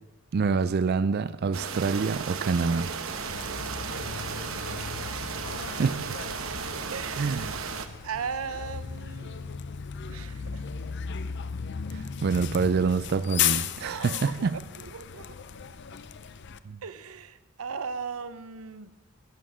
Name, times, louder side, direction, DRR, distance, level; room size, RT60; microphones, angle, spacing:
voice 1, 0.3-2.9 5.8-6.2 7.2-7.5 11.9-14.6 16.6-16.8, right 5 dB, 50° right, 0.3 m, -26 dB
sound 1, 1.5-7.9, right 5 dB, 70° right, 1.0 m, -35 dB
voice 2, 3.1-4.0 6.9-7.3 8.0-9.5 10.1-10.7 13.8-15.3 16.8-18.9, right 6 dB, 85° right, 0.7 m, -38 dB
Bus, 3.3-16.6, left 8 dB, 55° left, 0.5 m, -35 dB
11.5 x 11.5 x 6.2 m
head